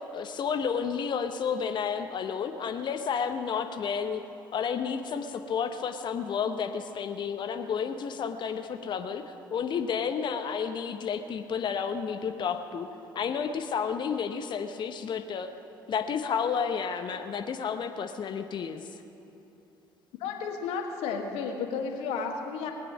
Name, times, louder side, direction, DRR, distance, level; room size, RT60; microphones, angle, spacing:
voice 1, 0.1-4.2 4.5-12.9 13.1-15.5 15.9-18.9, left 6 dB, 45° left, 7 dB, 0.9 m, -31 dB
voice 2, 20.2-22.7, left 5 dB, 65° left, 3 dB, 1.6 m, -32 dB
20.0 x 9.0 x 6.2 m, 2.9 s
hypercardioid pair, 55°, 11 cm